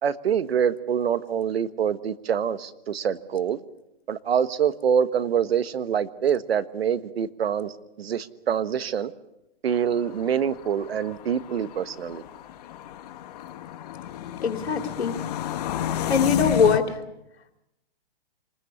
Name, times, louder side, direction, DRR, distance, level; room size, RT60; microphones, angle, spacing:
voice 1, 0.0-3.6 4.1-7.7 8.0-9.1 9.6-12.2, right 8 dB, 70° right, 14 dB, 1.4 m, -25 dB
sound 1, 9.7-16.8, left 11 dB, 40° left, 1.6 m, -32 dB
voice 2, 14.4-15.1 16.1-17.0, left 6 dB, 85° left, 6 dB, 3.1 m, -22 dB
27.0 x 20.5 x 7.2 m, 0.88 s
hypercardioid pair, 150°, 31 cm